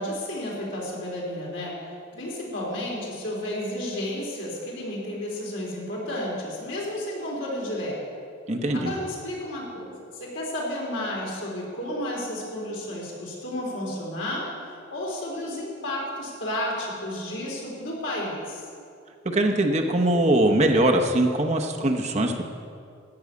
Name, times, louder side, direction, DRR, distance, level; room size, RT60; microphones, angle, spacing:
voice 1, 0.0-1.8 2.1-8.0 8.7-14.5 14.9-18.6, left 1 dB, 70° left, -3 dB, 3.8 m, -32 dB
voice 2, 8.5-8.9 19.2-22.4, right 1 dB, 35° right, 3 dB, 0.9 m, -22 dB
13.5 x 6.3 x 9.5 m, 2.4 s
head